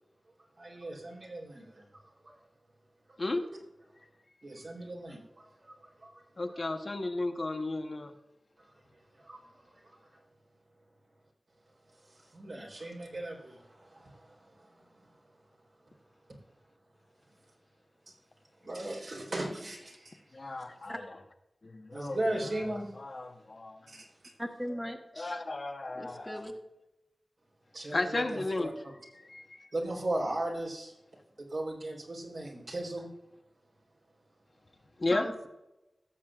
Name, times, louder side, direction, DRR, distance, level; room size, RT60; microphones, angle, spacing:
voice 1, 0.4-2.4 4.4-6.6 8.6-8.7 9.1-10.2 11.9-15.2 18.1-18.2 18.6-20.7 21.9-22.9 23.9-24.3 27.7-28.7 29.7-30.9 31.4-33.1, right 1 dB, 70° right, 3.7 m, -38 dB
voice 2, 6.4-8.1 20.3-20.9 21.6-22.2 23.0-23.9 25.2-26.5 27.9-28.7 29.3-29.7 35.0-35.3, left 2 dB, 55° left, 1.1 m, -34 dB
voice 3, 24.4-25.4 25.9-26.5 35.1-35.3, equal, ahead, 1.4 m, -38 dB
17.0 x 7.4 x 2.4 m
cardioid pair, 45°, 0 cm